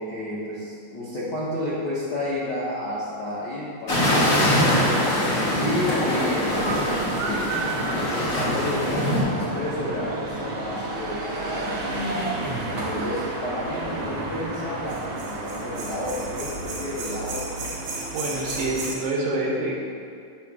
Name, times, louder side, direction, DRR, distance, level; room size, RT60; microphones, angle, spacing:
voice 1, 0.0-4.7 5.6-7.7 8.1-12.0 12.7-17.6, left 1 dB, 80° left, -9 dB, 0.9 m, -31 dB
sound 1, 3.9-9.2, equal, 50° left, 1.0 m, -23 dB
sound 2, 6.5-19.0, right 2 dB, 60° right, 2.1 m, -31 dB
voice 2, 18.1-19.8, right 2 dB, 80° right, -2 dB, 1.3 m, -26 dB
8.2 x 2.9 x 6.0 m, 2.3 s
omnidirectional pair, 3.7 m